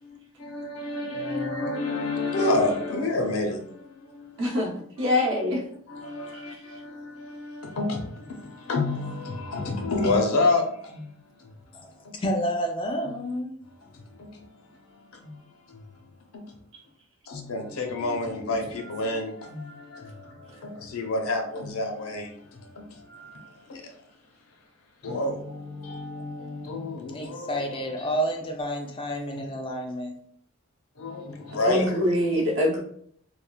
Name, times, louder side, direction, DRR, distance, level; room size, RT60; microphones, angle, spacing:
voice 1, 0.0-4.7 5.0-5.5 5.9-11.5 12.0-12.2 13.0-13.3 13.9-14.5 14.8-15.8 16.3-16.4 17.3-24.0 25.0-28.2 29.3-29.6 31.0-32.1, left 2 dB, 75° left, 0.6 m, -30 dB
voice 2, 4.4-5.6 6.5-6.6 31.6-32.8, left 1 dB, 60° right, 0.7 m, -24 dB
voice 3, 12.2-13.6 27.1-30.1, equal, 25° left, 0.3 m, -29 dB
3.1 x 2.2 x 2.2 m
head